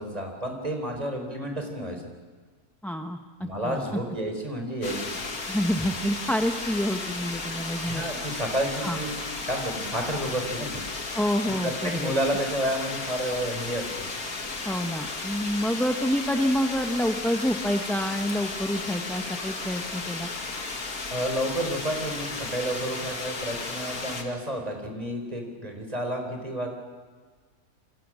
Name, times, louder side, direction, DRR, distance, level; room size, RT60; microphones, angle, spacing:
voice 1, 0.0-2.0 3.4-5.1 7.8-9.1 9.5-10.8 11.6-13.9 21.1-26.7, right 1 dB, 25° right, 3 dB, 4.5 m, -30 dB
voice 2, 2.8-4.0 5.5-8.1 8.8-9.0 11.1-12.1 14.6-20.3, equal, ahead, 4 dB, 0.9 m, -28 dB
sound 1, 4.8-24.2, left 3 dB, 85° left, 2.8 m, -34 dB
28.5 x 25.0 x 6.3 m, 1.5 s
omnidirectional pair, 1.5 m